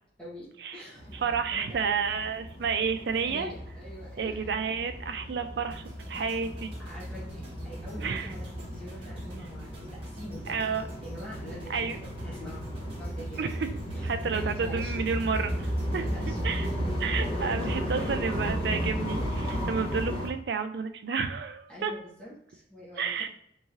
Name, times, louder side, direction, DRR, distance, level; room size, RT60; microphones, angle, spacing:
voice 1, 0.2-1.9 3.2-4.6 6.1-6.4 6.8-11.9 12.2-15.1 15.9-16.7 17.2-18.6 21.7-23.3, equal, 5° left, -9 dB, 1.1 m, -45 dB
sound 1, 1.0-20.3, equal, 30° left, 0.9 m, -34 dB
voice 2, 1.2-3.5 4.2-6.7 8.0-8.3 10.5-10.9 11.7-12.0 13.4-13.7 14.0-16.0 16.4-21.9 23.0-23.3, right 5 dB, 65° right, 8 dB, 0.4 m, -31 dB
sound 2, 5.7-17.9 18.2-18.5, right 1 dB, 30° right, 1.1 m, -51 dB
3.6 x 3.1 x 2.7 m, 0.68 s
head